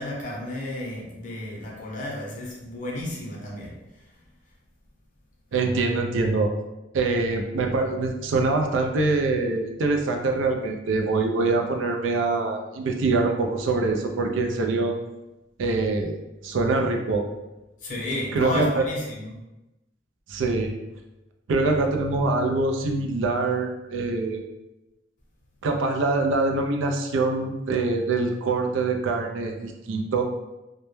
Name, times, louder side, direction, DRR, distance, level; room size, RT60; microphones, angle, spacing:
voice 1, 0.0-3.8 17.8-19.4, left 1 dB, 40° left, -3 dB, 0.6 m, -32 dB
voice 2, 5.5-6.5 6.9-14.9 15.6-16.2 16.4-17.2 18.3-18.8 20.3-20.7 21.5-24.4 25.6-30.2, right 3 dB, 80° right, 3 dB, 0.4 m, -24 dB
2.1 x 2.1 x 3.0 m, 1.0 s
head